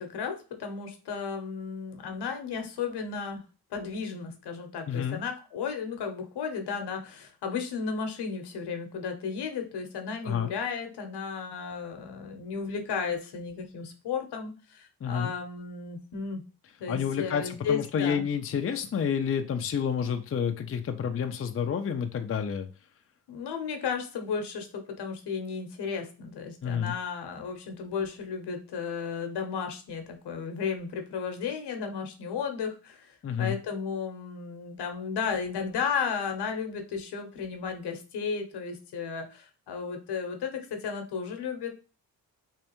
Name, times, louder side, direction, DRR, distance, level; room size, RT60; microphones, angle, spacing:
voice 1, 0.0-3.4 3.7-16.4 16.8-18.3 23.3-41.7, left 6 dB, 75° left, 5 dB, 1.0 m, -34 dB
voice 2, 4.9-5.2 10.2-10.5 15.0-15.3 16.9-22.7 26.6-26.9 33.2-33.6, left 7 dB, 35° left, 6 dB, 0.5 m, -29 dB
3.3 x 3.3 x 3.0 m, 0.34 s
cardioid pair, 70°, 41 cm